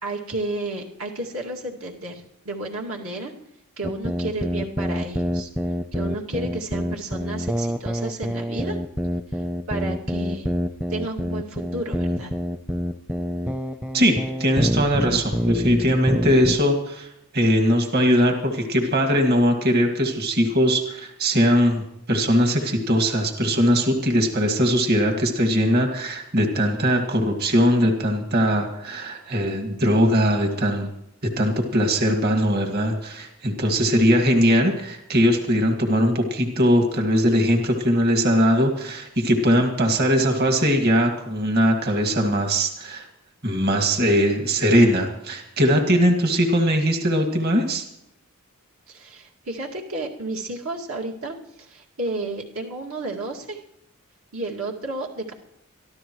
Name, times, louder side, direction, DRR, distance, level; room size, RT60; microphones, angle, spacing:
voice 1, 0.0-3.3 3.8-5.5 5.9-8.8 9.3-10.5 10.9-12.3 48.9-53.6 54.3-55.3, right 2 dB, 75° right, -1 dB, 2.2 m, -32 dB
sound 1, 3.8-16.6, equal, 5° right, 0.6 m, -26 dB
voice 2, 13.9-17.1 17.3-30.9 31.2-43.1 43.4-47.8, equal, 50° right, 3 dB, 2.1 m, -20 dB
24.0 x 14.0 x 3.1 m, 0.81 s
head